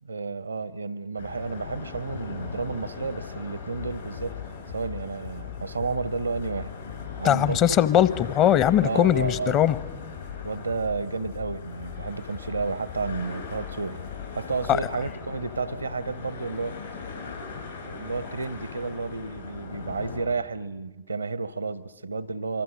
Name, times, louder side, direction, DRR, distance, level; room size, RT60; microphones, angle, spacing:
voice 1, 0.0-4.4 4.7-6.7 7.2-7.8 8.8-9.8 10.4-14.0 14.4-16.8 17.7-22.6, right 4 dB, 80° right, 19 dB, 0.8 m, -31 dB
sound 1, 1.2-20.2, left 5 dB, 80° left, 7.8 m, -40 dB
sound 2, 3.8-15.1, left 15 dB, 60° left, 2.6 m, -42 dB
voice 2, 7.2-9.8, left 10 dB, 35° left, 17 dB, 0.9 m, -20 dB
25.5 x 24.5 x 6.4 m, 1.1 s
figure-of-eight pair, 90°, 0 cm